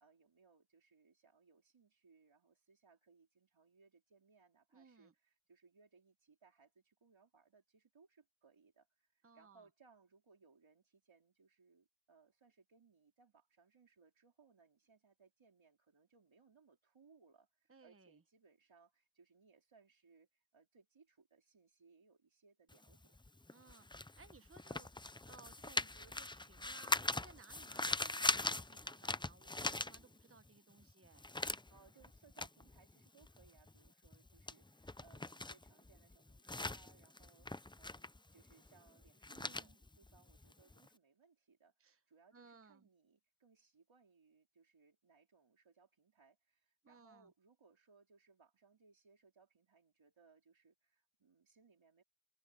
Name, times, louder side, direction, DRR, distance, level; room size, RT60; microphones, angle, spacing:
voice 1, 0.0-23.2 31.7-52.0, right 5 dB, 85° right, 3.7 m, -69 dB
voice 2, 4.7-5.1 9.2-9.7 17.7-18.2 23.5-31.3 39.3-39.8 41.8-42.0 42.3-42.9 46.8-47.3, right 4 dB, 30° right, 1.1 m, -62 dB
sound 1, 22.7-30.5 30.8-40.9, left 2 dB, 10° left, 0.5 m, -41 dB
wide cardioid pair, 65°, 45 cm